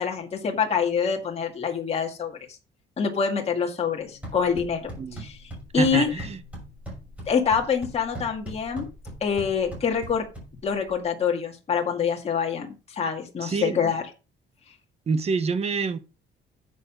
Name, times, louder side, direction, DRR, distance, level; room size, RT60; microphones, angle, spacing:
voice 1, 0.0-2.4 3.0-4.9 5.2-5.4 5.7-6.1 7.3-8.9 9.2-10.3 10.6-14.0, left 6 dB, 30° left, 2.2 m, -25 dB
sound 1, 4.0-11.0, right 1 dB, 5° right, 6.1 m, -41 dB
voice 2, 5.7-6.4 13.4-13.8 15.1-16.0, right 5 dB, 30° right, 1.0 m, -27 dB
10.0 x 7.6 x 5.2 m
cardioid pair, 170°, 20 cm